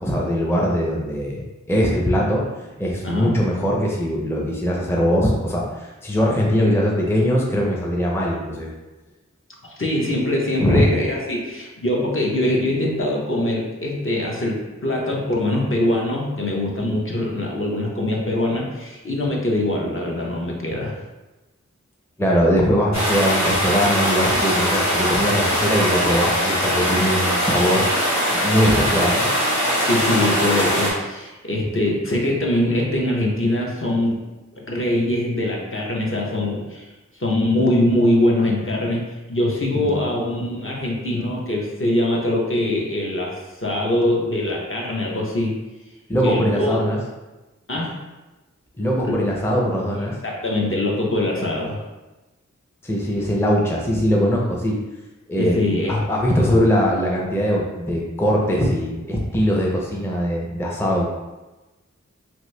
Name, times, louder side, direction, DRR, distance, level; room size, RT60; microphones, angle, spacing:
voice 1, 0.0-2.5 2.8-8.7 10.6-10.8 22.2-27.9 28.3-29.3 39.7-40.0 46.1-47.0 48.8-50.2 52.8-54.8 55.3-55.6 55.9-61.1, equal, 10° left, -3 dB, 0.5 m, -21 dB
voice 2, 3.0-3.3 9.6-20.9 29.9-34.2 34.6-36.9 37.2-45.5 46.2-46.8 47.7-48.0 49.0-49.2 50.2-51.8 55.4-56.0, left 1 dB, 45° left, -2 dB, 0.7 m, -23 dB
sound 1, 22.9-30.9, equal, 65° left, 1.1 m, -21 dB
2.9 x 2.6 x 3.2 m, 1.1 s
wide cardioid pair, 40°, 30 cm